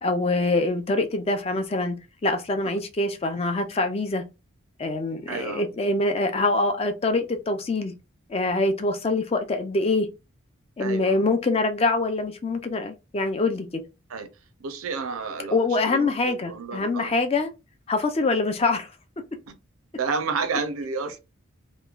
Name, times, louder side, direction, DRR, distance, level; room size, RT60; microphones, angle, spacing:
voice 1, 0.0-2.0 2.2-4.2 4.8-7.9 8.3-10.1 10.8-13.8 15.5-17.5 17.9-18.9, left 2 dB, 30° left, 0.4 m, -24 dB
voice 2, 5.3-5.6 10.8-11.2 14.1-14.3 14.6-15.6 15.8-17.1 19.5-19.6 20.0-21.2, right 4 dB, 85° right, 0.5 m, -30 dB
3.0 x 2.2 x 2.3 m
head